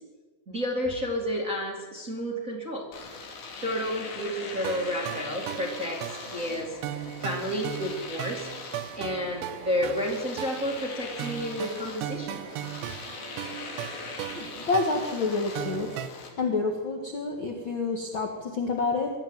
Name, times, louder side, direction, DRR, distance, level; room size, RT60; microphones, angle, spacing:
voice 1, 0.5-2.9 3.6-6.8 7.2-8.5 9.0-12.4, equal, 20° right, -1 dB, 2.5 m, -31 dB
Domestic sounds home sounds, 2.9-16.3, left 4 dB, 65° left, 5.1 m, -41 dB
sound 1, 4.6-16.1, right 12 dB, 80° right, 2.7 m, -38 dB
voice 2, 14.4-15.9 16.4-19.1, left 3 dB, 45° left, 1 dB, 1.6 m, -28 dB
23.0 x 13.5 x 9.2 m, 1.3 s
omnidirectional pair, 5.4 m